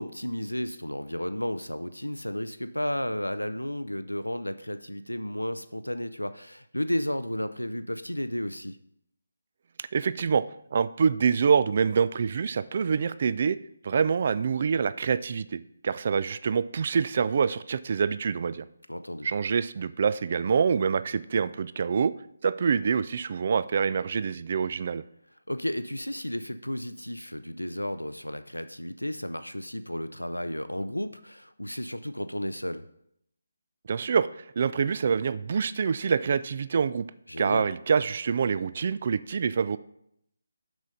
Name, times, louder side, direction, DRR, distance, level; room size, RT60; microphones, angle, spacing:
voice 1, 0.0-8.8 18.9-19.3 25.5-32.8 37.3-37.7, equal, 85° left, 12 dB, 0.4 m, -33 dB
voice 2, 9.8-10.4 10.7-13.6 13.8-18.6 19.2-22.1 22.4-25.0 33.9-37.0 37.4-39.8, right 6 dB, 40° right, 16 dB, 0.3 m, -26 dB
6.2 x 6.1 x 5.4 m, 0.75 s
figure-of-eight pair, 150°, 0 cm